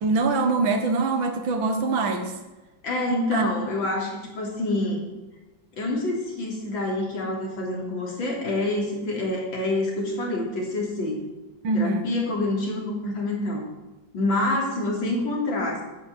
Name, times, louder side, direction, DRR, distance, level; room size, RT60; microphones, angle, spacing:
voice 1, 0.0-2.3 3.3-3.5 11.6-12.1, right 3 dB, 80° right, 6 dB, 2.2 m, -23 dB
voice 2, 2.8-5.0 5.7-11.2 11.7-13.7 14.1-15.8, left 2 dB, 80° left, -2 dB, 4.0 m, -27 dB
9.5 x 9.1 x 7.9 m, 1.1 s
omnidirectional pair, 2.1 m